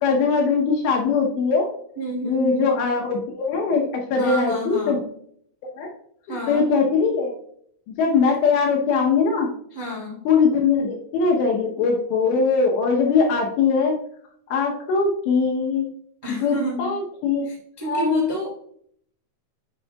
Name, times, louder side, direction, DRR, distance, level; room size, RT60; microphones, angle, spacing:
voice 1, 0.0-1.8 2.2-5.0 5.6-5.9 6.5-7.3 8.0-9.5 10.3-13.9 14.5-15.9 16.3-17.5 17.9-18.3, left 5 dB, 75° left, 0 dB, 2.8 m, -21 dB
voice 2, 1.9-2.9 4.1-5.0 6.3-6.7 9.7-10.2 16.2-16.9 17.4-18.5, right 1 dB, 30° right, -5 dB, 0.3 m, -29 dB
9.8 x 5.6 x 2.3 m, 0.65 s
omnidirectional pair, 5.8 m